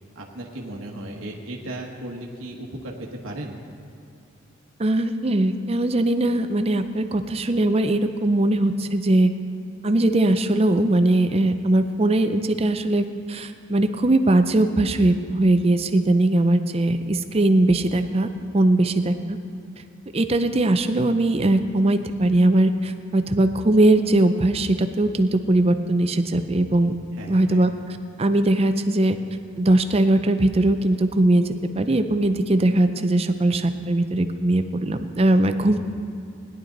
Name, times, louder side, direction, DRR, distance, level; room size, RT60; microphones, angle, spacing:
voice 1, 0.1-3.6 27.1-27.7, right 1 dB, 80° right, -1 dB, 1.2 m, -36 dB
voice 2, 4.8-9.3 9.8-18.3 18.5-19.4 20.1-27.0 27.3-27.7 28.2-29.2 29.6-31.4 31.8-35.8, right 1 dB, 30° right, 8 dB, 0.5 m, -20 dB
17.5 x 11.0 x 3.9 m, 2.5 s
head